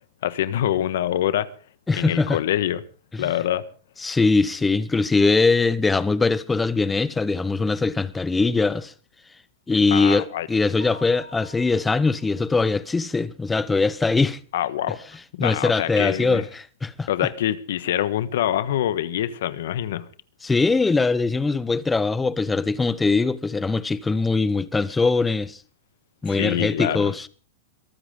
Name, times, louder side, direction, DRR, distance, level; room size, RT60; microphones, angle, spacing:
voice 1, 0.2-1.5 2.0-2.8 3.2-3.6 9.9-10.5 14.5-15.0 15.3-16.4 17.1-20.1 26.3-27.1, left 11 dB, 75° left, 1.4 m, -25 dB
voice 2, 1.9-2.4 3.1-3.3 4.0-8.9 9.7-14.4 15.4-17.1 20.4-25.6 26.2-27.3, left 3 dB, 10° left, 1.0 m, -21 dB
Mallet percussion, 10.8-12.6, left 1 dB, 85° right, 4.2 m, -46 dB
22.5 x 13.0 x 3.8 m
hypercardioid pair, 135°, 0 cm